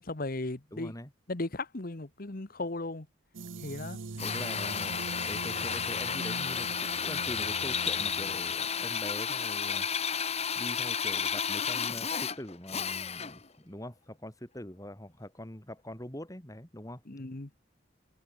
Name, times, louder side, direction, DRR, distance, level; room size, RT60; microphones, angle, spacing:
voice 1, 0.0-0.9 1.3-3.1 3.6-4.0 17.1-17.5, left 2 dB, 50° left, 1.3 m, -36 dB
voice 2, 0.7-1.1 4.1-5.0 5.3-9.9 10.6-17.0, left 1 dB, 20° left, 4.3 m, -43 dB
sound 1, 3.3-8.6, right 4 dB, 90° right, 0.8 m, -42 dB
Drill, 4.2-13.5, left 7 dB, 35° left, 1.9 m, -32 dB
head